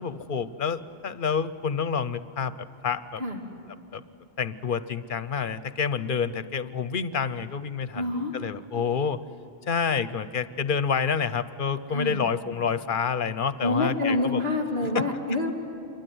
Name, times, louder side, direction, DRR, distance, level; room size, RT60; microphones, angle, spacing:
voice 1, 0.0-3.2 3.9-4.0 4.4-9.2 9.7-14.4 14.9-15.0, left 6 dB, 55° left, 14 dB, 0.9 m, -28 dB
voice 2, 7.9-8.3 11.9-12.2 13.6-15.5, left 2 dB, 70° right, 1 dB, 3.0 m, -27 dB
27.0 x 23.0 x 9.4 m, 2.7 s
omnidirectional pair, 1.1 m